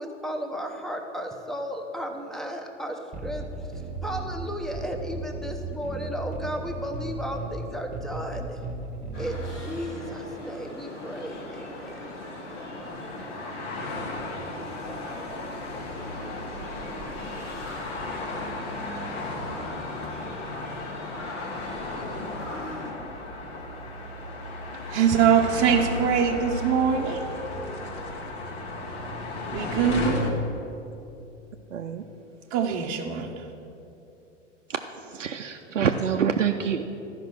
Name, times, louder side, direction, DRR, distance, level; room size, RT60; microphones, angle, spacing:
voice 1, 0.0-8.6 9.2-12.0, equal, ahead, 0.8 m, -34 dB
sound 1, 3.1-9.5, right 3 dB, 20° right, 1.1 m, -36 dB
sound 2, 9.1-22.9, left 1 dB, 80° left, 1.9 m, -40 dB
sound 3, 11.0-30.3, left 2 dB, 55° left, 1.5 m, -35 dB
voice 2, 24.9-27.2 29.5-30.3 32.5-33.5, right 7 dB, 35° right, 0.8 m, -23 dB
voice 3, 31.7-32.0 34.7-36.8, right 7 dB, 90° right, 0.5 m, -27 dB
12.5 x 5.3 x 6.1 m
figure-of-eight pair, 95°, 36 cm